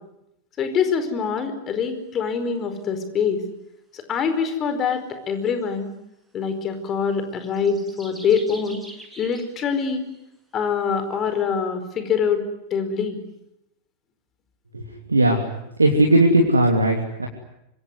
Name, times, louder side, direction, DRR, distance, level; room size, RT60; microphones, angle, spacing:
voice 1, 0.6-3.4 3.9-5.9 6.3-8.8 9.2-10.0 10.5-12.4 12.7-13.2, left 6 dB, 30° left, 9 dB, 4.8 m, -24 dB
sound 1, 4.9-5.0 5.5-5.6 7.3-10.2, right 1 dB, ahead, 7.6 m, -44 dB
voice 2, 15.1-15.4 15.8-17.3, right 1 dB, 80° right, 2 dB, 3.1 m, -17 dB
25.5 x 24.0 x 9.6 m, 0.82 s
figure-of-eight pair, 90°, 0 cm